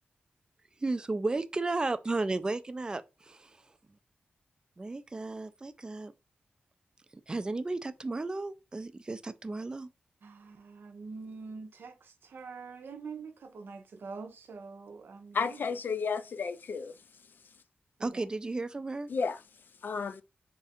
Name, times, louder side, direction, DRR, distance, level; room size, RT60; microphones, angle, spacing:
voice 1, 0.8-3.6 4.8-6.1 7.3-9.9 18.0-19.1, right 3 dB, 20° right, 0.3 m, -34 dB
voice 2, 10.2-15.5 18.0-18.2, right 4 dB, 75° right, 0.6 m, -45 dB
voice 3, 15.3-17.0 19.1-19.4 19.8-20.2, left 5 dB, 60° left, 0.3 m, -32 dB
3.7 x 2.4 x 4.2 m
wide cardioid pair, 120°, 4 cm